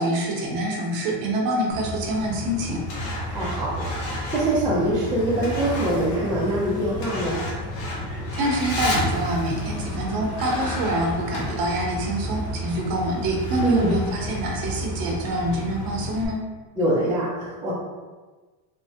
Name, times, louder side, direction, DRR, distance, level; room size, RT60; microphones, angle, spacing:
voice 1, 0.0-2.8 8.1-16.4, right 1 dB, 45° right, -1 dB, 0.6 m, -26 dB
Truck, 1.7-16.3, left 1 dB, 85° left, 0.9 m, -31 dB
voice 2, 3.3-7.4 13.6-14.0 16.8-17.7, right 1 dB, 10° right, -8 dB, 0.3 m, -24 dB
3.1 x 2.1 x 2.6 m, 1.3 s
supercardioid pair, 135°, 49 cm